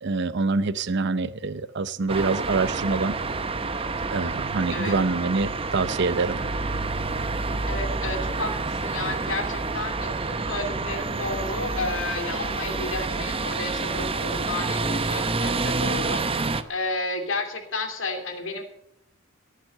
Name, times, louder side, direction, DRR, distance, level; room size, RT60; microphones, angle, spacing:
voice 1, 0.0-3.1 4.1-6.4, right 3 dB, 55° right, 14 dB, 0.7 m, -25 dB
sound 1, 2.1-16.6, right 3 dB, 25° right, 0.8 m, -28 dB
voice 2, 7.7-18.6, left 2 dB, 65° left, 5 dB, 2.8 m, -32 dB
18.0 x 7.6 x 7.6 m, 0.76 s
head